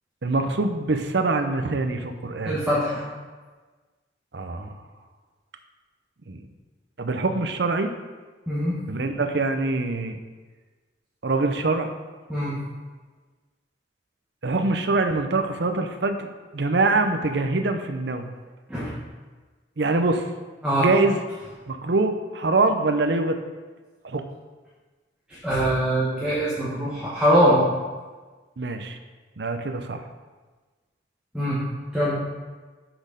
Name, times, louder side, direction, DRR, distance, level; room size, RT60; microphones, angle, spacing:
voice 1, 0.2-2.5 4.3-4.7 6.3-6.4 7.0-7.9 8.9-10.2 11.2-11.9 14.4-18.3 19.8-20.3 20.8-21.2 21.7-23.4 24.0-24.2 28.6-29.0 29.4-30.0, right 3 dB, 65° right, 6 dB, 0.7 m, -24 dB
voice 2, 2.4-3.0 8.5-8.8 12.3-12.6 18.7-18.9 20.6-20.9 25.3-27.7 31.3-31.6 31.9-32.2, equal, 5° right, -9 dB, 1.3 m, -22 dB
6.3 x 6.1 x 5.1 m, 1.3 s
head